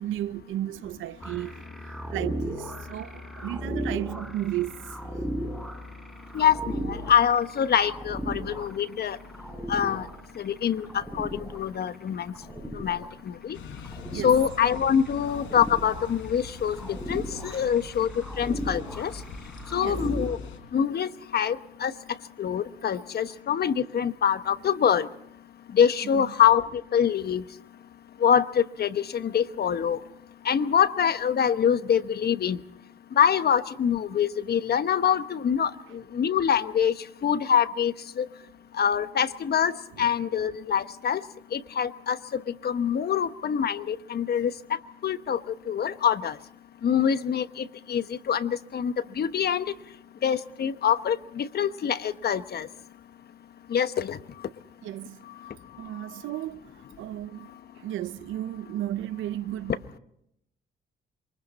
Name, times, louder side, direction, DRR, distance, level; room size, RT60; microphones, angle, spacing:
voice 1, 0.0-1.6 2.1-5.0 14.1-14.4 17.5-17.6 19.8-20.1 26.1-26.3 39.9-40.1 54.8-55.3 55.8-56.7 57.0-57.5 57.8-60.0, right 13 dB, 85° right, 0.8 m, -34 dB
sound 1, 1.2-20.4, equal, ahead, 3.7 m, -37 dB
voice 2, 6.3-9.2 9.7-10.1 10.4-12.3 12.7-13.6 14.2-18.1 18.4-19.1 19.7-20.4 20.7-21.9 22.4-25.1 25.7-27.4 28.2-30.0 30.4-32.6 33.1-37.0 37.2-38.3 38.7-41.2 41.5-45.4 45.7-46.4 46.8-49.6 50.2-52.7 53.7-54.2 55.4-55.5, left 8 dB, 55° left, 1.1 m, -25 dB
sound 2, 13.5-20.6, left 4 dB, 85° left, 4.3 m, -44 dB
27.5 x 23.5 x 4.2 m
cardioid pair, 90°, 20 cm